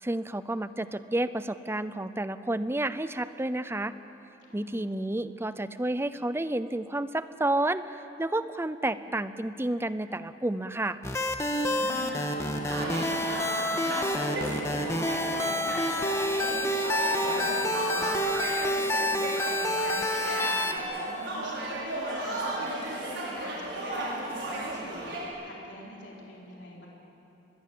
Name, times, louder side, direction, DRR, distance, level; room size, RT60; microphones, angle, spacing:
voice 1, 0.0-4.0 4.5-11.0, right 1 dB, 15° right, 13 dB, 0.6 m, -30 dB
voice 2, 4.5-4.9 11.6-25.0 25.4-26.9, left 1 dB, 65° left, -3 dB, 4.0 m, -43 dB
sound 1, 11.0-20.8, left 1 dB, 15° left, 1.5 m, -28 dB
sound 2, 12.7-25.3, right 2 dB, 70° right, 6.3 m, -34 dB
24.5 x 21.0 x 7.6 m, 3.0 s
head